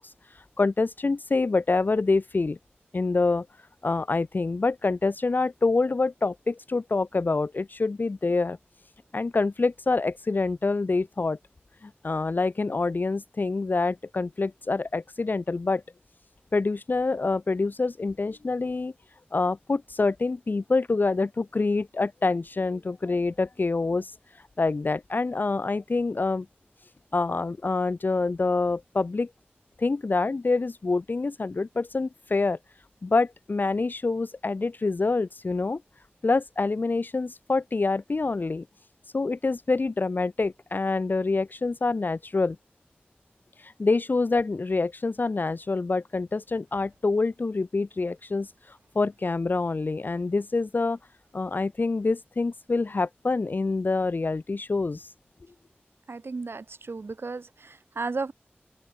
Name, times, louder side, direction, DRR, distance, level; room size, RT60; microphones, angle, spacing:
voice 1, 0.0-2.6 2.9-3.5 3.8-8.6 9.1-11.4 11.8-15.8 16.5-18.9 19.3-24.1 24.6-26.5 27.1-29.3 29.8-32.6 33.0-35.8 36.2-38.6 39.1-42.6 43.6-51.0 51.3-55.1, left 3 dB, 55° left, 0.4 m, -26 dB
voice 2, 56.1-58.3, right 3 dB, 75° right, 1.4 m, -34 dB
wide cardioid pair, 55°, 4 cm